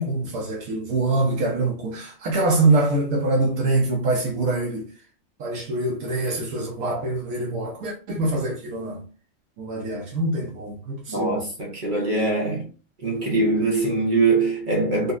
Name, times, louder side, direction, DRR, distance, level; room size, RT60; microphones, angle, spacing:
voice 1, 0.0-4.9 5.4-9.0 9.6-11.5, right 2 dB, 90° right, 1.2 m, -24 dB
voice 2, 11.1-12.7 13.0-15.1, right 3 dB, 50° right, 0.6 m, -22 dB
4.0 x 2.1 x 2.4 m
omnidirectional pair, 1.4 m